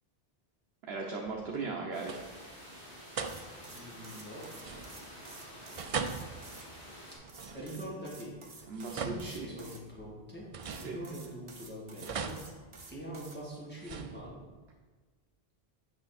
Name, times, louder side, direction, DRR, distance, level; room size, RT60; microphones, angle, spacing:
voice 1, 0.9-2.2 8.7-9.7 10.8-11.0, right 4 dB, 85° right, -1 dB, 1.1 m, -38 dB
sound 1, 1.3-1.7 2.0-2.5 3.2-3.8 4.6-5.3 5.8-8.0 8.6-10.0 10.5-11.5 12.0-13.3 13.8-14.7, right 5 dB, 50° right, 0.4 m, -41 dB
sound 2, 1.9-7.2, equal, 60° left, 3.1 m, -49 dB
sound 3, 3.2-6.7 7.3-9.8 10.6-13.4, right 3 dB, 30° right, 0.8 m, -52 dB
voice 2, 3.7-4.4 7.2-8.3 8.9-10.5 10.7-12.6 12.9-14.4, equal, 10° left, -6 dB, 2.3 m, -44 dB
8.6 x 5.8 x 4.1 m, 1.3 s
omnidirectional pair, 1.0 m